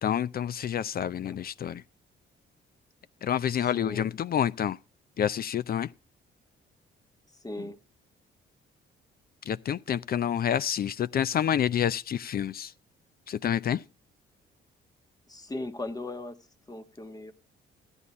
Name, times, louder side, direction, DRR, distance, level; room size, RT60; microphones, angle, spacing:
voice 1, 0.0-1.8 3.2-4.8 5.2-5.9 9.5-12.7 13.3-13.8, left 9 dB, 50° left, 0.5 m, -28 dB
voice 2, 3.7-4.1 7.4-7.8 15.3-16.4 16.7-17.3, left 2 dB, 20° left, 1.3 m, -38 dB
13.5 x 9.9 x 4.1 m
cardioid pair, 90°, 20 cm